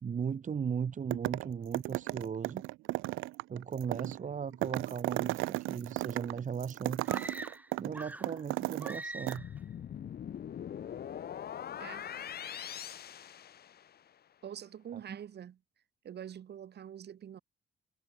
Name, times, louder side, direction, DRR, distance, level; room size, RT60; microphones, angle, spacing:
voice 1, 0.0-2.6 3.5-7.2 7.8-9.5 15.1-15.2, right 7 dB, 40° right, 1.1 m, -37 dB
sound 1, 1.1-1.5 1.7-9.0 9.3-9.4, right 19 dB, 90° right, 0.4 m, -35 dB
sound 2, 7.0-8.4 8.8-9.6, right 1 dB, 10° right, 2.1 m, -43 dB
sound 3, 9.4-14.1, left 9 dB, 50° left, 1.0 m, -42 dB
voice 2, 11.8-12.1 14.4-15.6 16.0-17.4, right 9 dB, 60° right, 1.8 m, -45 dB
cardioid pair, 90°, 20 cm